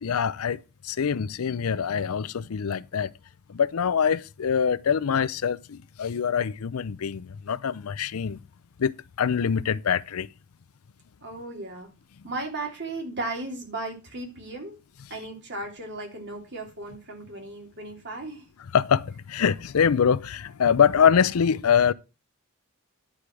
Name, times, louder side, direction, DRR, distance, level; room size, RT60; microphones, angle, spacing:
voice 1, 0.0-3.1 3.5-8.4 8.8-10.3 18.7-21.9, left 7 dB, 90° left, 0.5 m, -24 dB
voice 2, 11.2-11.9 12.2-14.8 15.1-18.4, right 2 dB, 55° right, 3.1 m, -36 dB
10.5 x 5.0 x 6.0 m
head